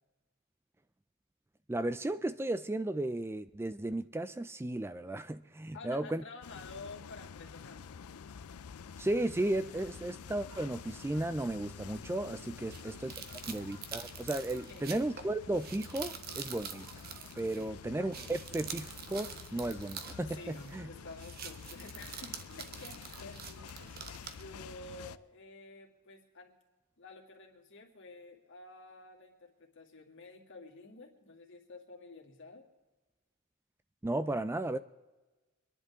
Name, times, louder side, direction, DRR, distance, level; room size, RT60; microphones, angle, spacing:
voice 1, 1.7-6.2 9.0-16.9 17.4-20.9 34.0-34.8, right 1 dB, 10° right, 0.3 m, -35 dB
voice 2, 5.7-8.0 12.5-13.7 14.7-15.1 17.6-17.8 20.3-26.5 27.0-32.7, left 3 dB, 60° left, 2.5 m, -51 dB
sound 1, 6.4-25.2, left 6 dB, 90° left, 0.5 m, -49 dB
sound 2, 10.5-24.2, right 2 dB, 85° right, 2.2 m, -61 dB
sound 3, 12.7-17.7 18.0-20.8 21.1-24.4, right 7 dB, 45° right, 1.1 m, -46 dB
26.0 x 11.0 x 3.6 m
head